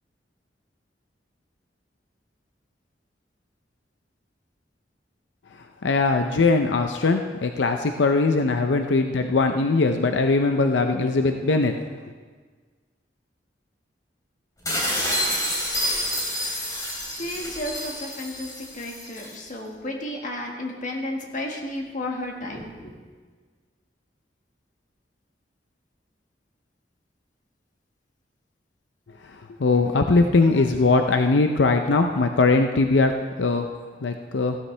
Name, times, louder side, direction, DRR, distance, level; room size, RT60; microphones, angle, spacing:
voice 1, 5.8-11.7 29.6-33.1 33.4-33.7 34.0-34.6, left 3 dB, 85° left, 6 dB, 0.6 m, -20 dB
sound 1, 14.7-19.4, equal, 20° left, 3.1 m, -28 dB
voice 2, 17.1-22.9, left 1 dB, 45° left, 1 dB, 1.6 m, -33 dB
15.5 x 12.5 x 3.3 m, 1.5 s
head